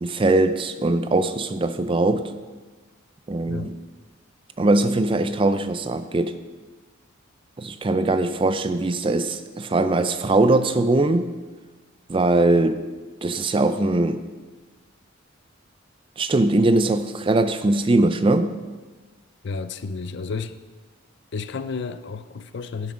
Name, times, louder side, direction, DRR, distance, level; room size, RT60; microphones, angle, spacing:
voice 1, 0.0-2.3 3.3-3.7 4.6-6.4 7.6-11.3 12.1-12.8 13.2-14.2 16.2-18.5, right 2 dB, 25° right, 0.4 m, -21 dB
voice 2, 19.4-20.6 21.3-22.9, left 4 dB, 55° left, 0.5 m, -31 dB
11.0 x 5.9 x 6.1 m
head